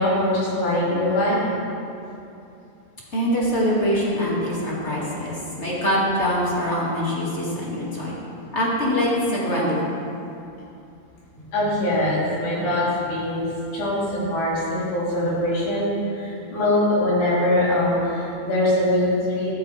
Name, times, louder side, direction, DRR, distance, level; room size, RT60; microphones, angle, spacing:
voice 1, 0.0-1.4 11.5-13.5 13.7-15.9 16.1-19.5, left 1 dB, 65° left, -9 dB, 5.5 m, -22 dB
voice 2, 3.1-8.1 8.5-9.8, equal, 30° left, -6 dB, 1.4 m, -23 dB
15.0 x 13.5 x 3.5 m, 2.7 s
omnidirectional pair, 5.1 m